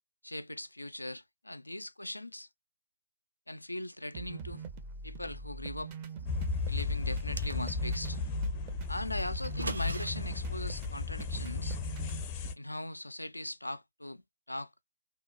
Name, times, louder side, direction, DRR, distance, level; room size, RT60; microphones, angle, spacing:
voice 1, 0.2-2.5 3.5-4.6 5.0-5.9 6.7-8.2 8.9-11.8 12.6-14.7, left 1 dB, 85° left, 0.3 m, -40 dB
sound 1, 4.1-12.2, right 4 dB, 25° right, 0.6 m, -43 dB
sound 2, 6.2-12.5, left 4 dB, 25° left, 0.5 m, -35 dB
sound 3, 7.1-8.0 9.4-10.1, right 2 dB, 70° right, 0.5 m, -40 dB
2.9 x 2.1 x 2.6 m
figure-of-eight pair, 135°, 0 cm